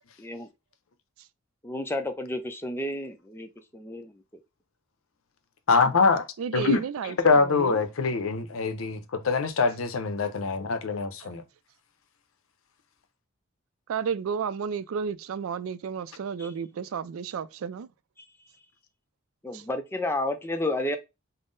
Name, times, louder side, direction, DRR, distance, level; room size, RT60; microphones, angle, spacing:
voice 1, 0.2-0.5 1.6-4.2 16.4-16.5 19.4-21.0, left 1 dB, 10° left, 0.4 m, -31 dB
voice 2, 5.7-6.2 6.5-11.4, left 4 dB, 80° left, 0.6 m, -24 dB
voice 3, 6.4-7.8 11.2-11.4 13.9-17.9 19.5-19.6, right 6 dB, 85° right, 0.3 m, -32 dB
3.6 x 2.0 x 3.8 m
head